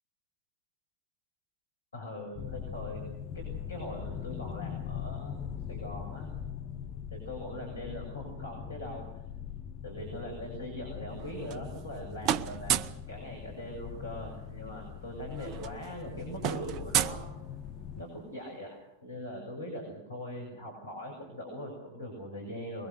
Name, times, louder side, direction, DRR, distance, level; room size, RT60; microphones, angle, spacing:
voice 1, 1.9-3.0 3.3-5.4 5.7-6.3 7.1-9.0 9.8-17.2 18.0-22.9, equal, 75° left, 0 dB, 6.9 m, -41 dB
sound 1, 2.4-18.0, left 8 dB, 30° left, 1.4 m, -41 dB
sound 2, 11.2-12.0 12.2-13.1 14.4-14.5 14.8-15.0 15.3-17.9, right 10 dB, 40° right, 0.8 m, -32 dB
24.5 x 22.5 x 6.5 m, 0.86 s
figure-of-eight pair, 90°, 0 cm